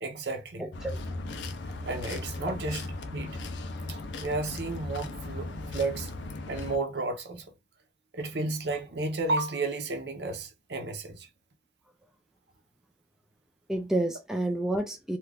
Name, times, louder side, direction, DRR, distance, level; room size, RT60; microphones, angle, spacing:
voice 1, 0.0-0.7 1.9-2.9 3.1-3.4 3.9-6.1 6.5-7.4 8.1-11.3, right 2 dB, 60° right, 0.7 m, -32 dB
voice 2, 0.6-1.0 2.4-2.6 13.7-15.2, right 1 dB, 5° right, 0.3 m, -30 dB
sound 1, 0.7-6.8, left 2 dB, 70° left, 0.5 m, -37 dB
2.8 x 2.5 x 3.3 m
head